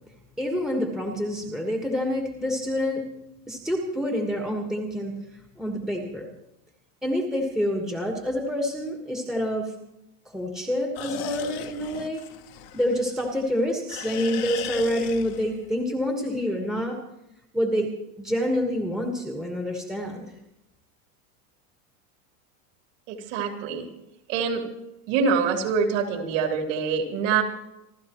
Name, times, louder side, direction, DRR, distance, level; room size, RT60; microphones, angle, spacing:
voice 1, 0.4-3.0 3.5-5.1 5.6-6.3 7.0-9.7 10.2-12.2 12.7-17.0 17.5-17.9 18.2-20.3, equal, ahead, 0 dB, 1.4 m, -27 dB
sound 1, 10.9-13.5 13.9-15.7, left 12 dB, 35° left, 1.0 m, -37 dB
voice 2, 23.1-23.9 24.3-24.6 25.1-27.4, right 6 dB, 50° right, 2 dB, 3.3 m, -25 dB
28.5 x 13.0 x 3.1 m, 0.86 s
supercardioid pair, 175°, 45 cm